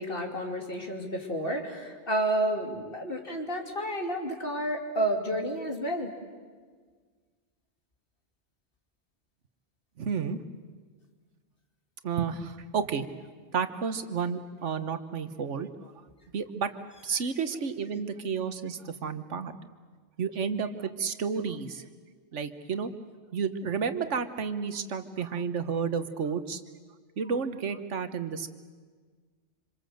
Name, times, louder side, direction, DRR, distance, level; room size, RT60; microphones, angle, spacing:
voice 1, 0.0-6.1, right 1 dB, 50° left, 3 dB, 3.0 m, -30 dB
voice 2, 10.0-10.4 12.0-13.1 13.5-15.9 16.3-19.6 20.2-21.8 22.3-22.9 23.3-26.6 27.2-28.5, right 6 dB, 85° right, 10 dB, 1.5 m, -31 dB
26.5 x 26.0 x 7.8 m, 1.5 s
omnidirectional pair, 1.2 m